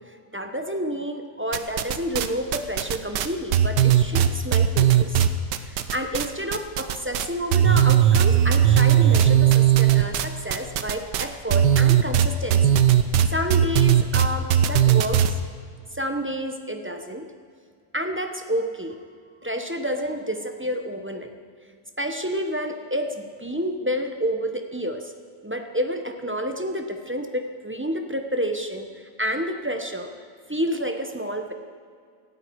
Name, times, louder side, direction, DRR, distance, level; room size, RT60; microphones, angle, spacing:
voice 1, 0.1-5.3 5.6-12.6 13.3-15.4 15.9-17.2 17.9-19.0 19.4-21.3 22.0-25.1 25.4-28.9 29.2-30.1 30.5-31.5, equal, 10° right, 5 dB, 0.6 m, -29 dB
sound 1, 1.5-2.3 2.5-6.3 6.5-7.3 7.5-15.3, right 10 dB, 90° right, 1.4 m, -18 dB
18.0 x 13.5 x 4.7 m, 2.1 s
omnidirectional pair, 1.8 m